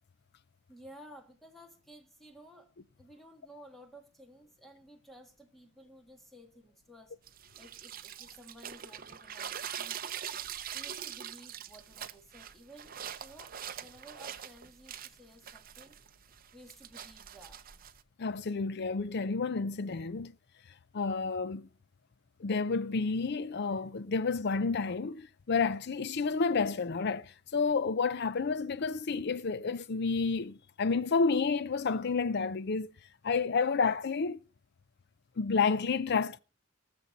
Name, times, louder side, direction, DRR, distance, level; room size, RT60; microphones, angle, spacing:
voice 1, 0.7-2.7 3.0-7.1 7.6-10.2 10.7-15.9 16.5-17.6, equal, ahead, 1.7 m, -54 dB
sound 1, 7.3-18.0, right 9 dB, 45° right, 0.7 m, -43 dB
voice 2, 18.2-20.3 20.9-21.7 22.4-32.9 33.2-34.4 35.4-36.4, left 4 dB, 55° left, 0.5 m, -30 dB
19.5 x 7.0 x 4.0 m
head